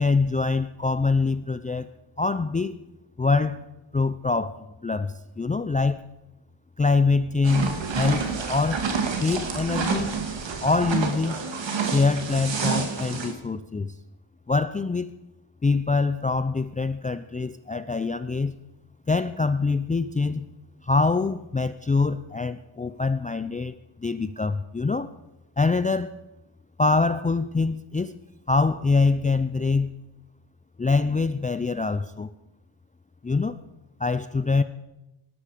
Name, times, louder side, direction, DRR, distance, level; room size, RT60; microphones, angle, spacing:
voice 1, 0.0-1.9 2.2-2.8 3.2-3.6 3.9-6.0 6.8-8.9 9.2-10.2 10.6-11.4 11.8-13.9 14.5-15.1 15.6-18.6 19.1-20.5 20.8-25.1 25.6-26.1 26.8-28.2 28.5-29.9 30.8-32.3 33.2-33.6 34.0-34.6, left 4 dB, 15° left, 0.4 m, -24 dB
sound 1, 7.4-13.3, right 5 dB, 65° right, 2.4 m, -28 dB
18.5 x 13.0 x 5.1 m
wide cardioid pair, 115°, 48 cm